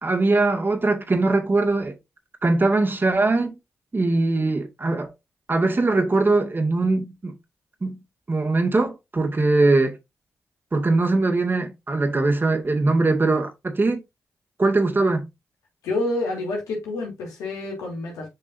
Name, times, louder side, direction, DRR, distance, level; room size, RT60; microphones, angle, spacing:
voice 1, 0.0-1.9 2.4-3.6 3.9-5.1 5.5-7.3 7.8-8.0 8.3-10.0 10.7-14.0 14.6-15.3, right 3 dB, 40° right, 2.1 m, -21 dB
voice 2, 15.8-18.3, left 2 dB, 90° left, 3.1 m, -28 dB
7.2 x 5.4 x 2.7 m
supercardioid pair, 40°, 6 cm